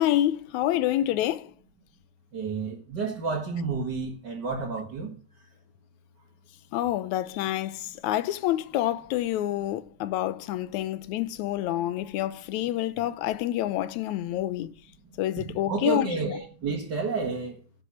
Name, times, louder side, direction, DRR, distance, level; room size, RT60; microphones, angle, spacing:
voice 1, 0.0-1.5 6.7-14.7 15.2-16.4, left 13 dB, 85° left, 2.1 m, -28 dB
voice 2, 2.3-5.1 15.7-17.6, right 4 dB, 40° right, 2.3 m, -30 dB
11.5 x 7.2 x 6.3 m
omnidirectional pair, 3.3 m